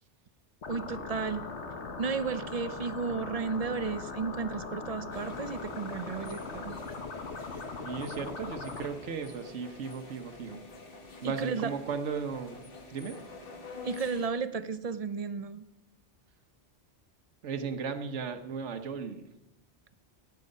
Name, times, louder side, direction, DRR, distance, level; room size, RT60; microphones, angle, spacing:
sound 1, 0.6-8.9, left 4 dB, 80° left, 1.6 m, -40 dB
voice 1, 0.7-1.5 2.0-6.8 11.2-11.7 13.8-15.6, right 5 dB, 45° right, 13 dB, 0.5 m, -33 dB
sound 2, 5.1-14.3, left 3 dB, 55° left, 1.5 m, -47 dB
voice 2, 7.8-10.6 11.2-12.6 12.9-13.2 17.4-19.3, right 6 dB, 85° right, 8 dB, 1.2 m, -36 dB
17.5 x 8.9 x 5.3 m, 0.92 s
omnidirectional pair, 1.2 m